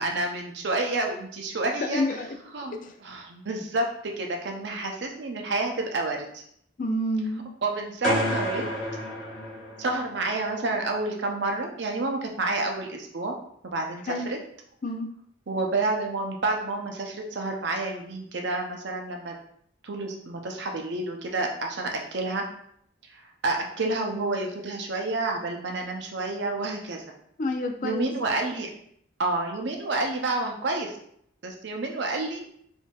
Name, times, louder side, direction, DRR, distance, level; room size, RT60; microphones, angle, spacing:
voice 1, 0.0-2.0 2.5-3.9 4.2-6.4 7.6-8.7 9.8-13.3 13.6-14.4 15.5-19.3 19.8-22.4 23.1-27.0 27.8-28.7 29.2-31.0 31.4-32.4, right 2 dB, 65° right, 2 dB, 0.6 m, -29 dB
voice 2, 1.8-2.3 2.8-3.0 6.8-7.4 14.1-14.3 14.8-15.1 27.4-28.1, left 1 dB, 40° left, 4 dB, 0.4 m, -28 dB
Pipe Reverb Bomb, 8.0-10.2, equal, 5° left, 1.0 m, -29 dB
4.3 x 2.7 x 2.3 m, 0.68 s
head